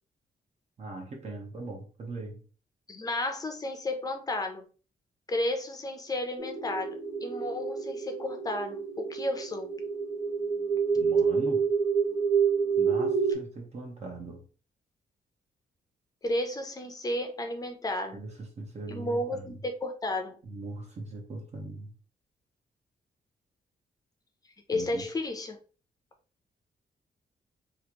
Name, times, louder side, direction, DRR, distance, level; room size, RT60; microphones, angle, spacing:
voice 1, 0.8-2.4 10.9-11.6 12.8-14.4 18.1-19.5 20.4-21.9 24.7-25.0, right 2 dB, 45° right, 1 dB, 1.0 m, -40 dB
voice 2, 2.9-4.7 5.3-9.7 16.2-18.2 18.9-20.4 24.7-25.6, left 1 dB, 25° left, 5 dB, 0.6 m, -32 dB
sound 1, 6.4-13.3, right 6 dB, 5° right, 0.9 m, -28 dB
3.2 x 2.5 x 2.9 m, 0.37 s
wide cardioid pair, 145°, 16 cm